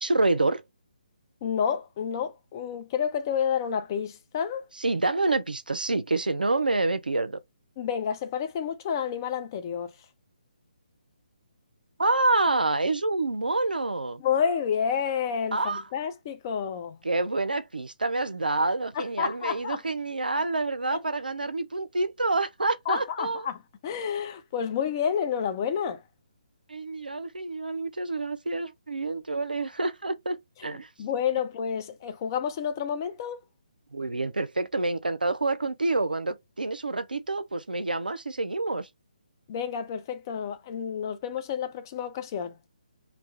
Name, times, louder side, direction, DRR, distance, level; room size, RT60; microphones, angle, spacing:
voice 1, 0.0-0.6 4.8-7.4 12.0-14.2 15.5-15.8 17.0-23.4 26.7-30.9 33.9-38.9, right 2 dB, 80° right, 0.4 m, -27 dB
voice 2, 1.4-4.6 7.8-9.9 14.2-17.0 18.9-19.8 20.9-21.0 22.9-26.0 30.6-33.4 39.5-42.5, left 7 dB, 25° left, 0.3 m, -30 dB
2.3 x 2.1 x 2.7 m
figure-of-eight pair, 140°, 5 cm